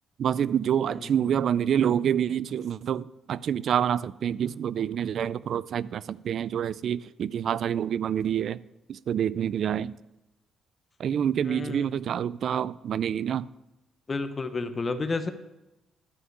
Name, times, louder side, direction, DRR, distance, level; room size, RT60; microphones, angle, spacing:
voice 1, 0.2-8.6 8.9-10.0 11.0-13.5, right 9 dB, 65° right, 0.3 m, -27 dB
voice 2, 11.5-11.9 14.1-15.3, left 3 dB, 30° left, 0.9 m, -30 dB
11.5 x 6.4 x 6.1 m
cardioid pair, 90°, 0 cm